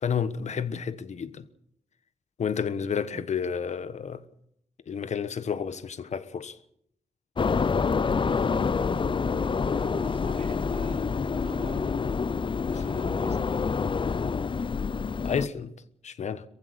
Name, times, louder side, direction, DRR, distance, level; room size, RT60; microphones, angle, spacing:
voice 1, 0.0-1.5 2.4-4.2 4.9-6.6 15.2-15.7 16.0-16.4, left 7 dB, 65° left, 1.3 m, -30 dB
sound 1, 7.4-15.5, left 5 dB, 40° left, 0.7 m, -27 dB
voice 2, 8.4-12.3 12.7-13.5, right 5 dB, 55° right, 2.2 m, -46 dB
22.5 x 15.0 x 8.2 m
cardioid pair, 95°, 12 cm